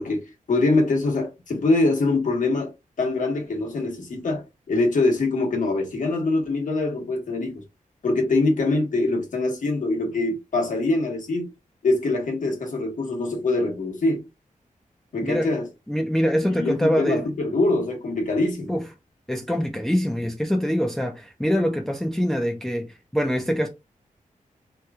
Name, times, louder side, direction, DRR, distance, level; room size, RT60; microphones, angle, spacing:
voice 1, 0.0-2.7 3.0-7.6 8.0-11.5 11.8-14.3 15.1-15.7 16.4-18.8, left 2 dB, 65° left, 1.1 m, -24 dB
voice 2, 15.9-17.3 18.7-18.8 19.3-23.7, equal, 5° left, 0.4 m, -24 dB
2.9 x 2.2 x 3.4 m
wide cardioid pair, 140°, 14 cm